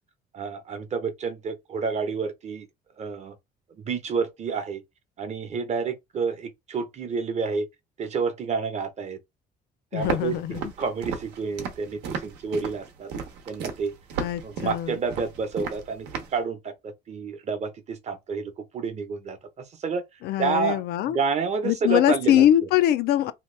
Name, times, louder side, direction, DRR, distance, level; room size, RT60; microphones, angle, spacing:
voice 1, 0.3-2.7 3.0-3.3 3.8-4.8 5.2-7.7 8.0-9.2 9.9-10.3 10.8-13.1 13.5-13.9 14.4-20.0 20.4-20.8 21.1-22.5, right 5 dB, 40° right, 0.7 m, -29 dB
voice 2, 9.9-10.7 14.2-15.0 20.2-21.2 21.6-23.3, left 12 dB, 75° left, 0.4 m, -22 dB
Walk footsteps, 10.0-16.4, right 6 dB, 90° right, 0.8 m, -34 dB
2.8 x 2.3 x 3.2 m
cardioid pair, 110°, 17 cm